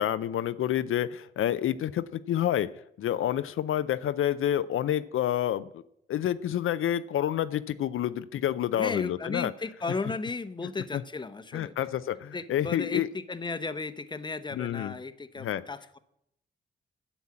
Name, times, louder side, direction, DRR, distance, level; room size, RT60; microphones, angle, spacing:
voice 1, 0.0-2.7 3.0-5.7 6.1-9.5 10.9-11.0 11.5-13.1 14.5-14.9 15.4-15.6, left 11 dB, 75° left, 14 dB, 0.5 m, -28 dB
voice 2, 8.8-11.7 12.3-16.0, left 3 dB, 20° left, 12 dB, 0.8 m, -35 dB
9.7 x 7.1 x 8.6 m, 0.79 s
cardioid pair, 80°, 21 cm